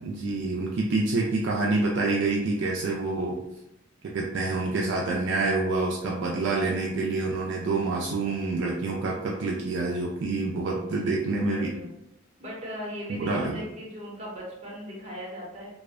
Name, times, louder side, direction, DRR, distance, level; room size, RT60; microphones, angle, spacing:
voice 1, 0.0-3.4 4.0-11.7 13.1-13.6, right 3 dB, 65° right, -2 dB, 0.3 m, -27 dB
voice 2, 10.8-11.2 11.5-11.9 12.4-15.7, equal, 35° right, -4 dB, 0.8 m, -39 dB
2.6 x 2.1 x 2.4 m, 0.85 s
head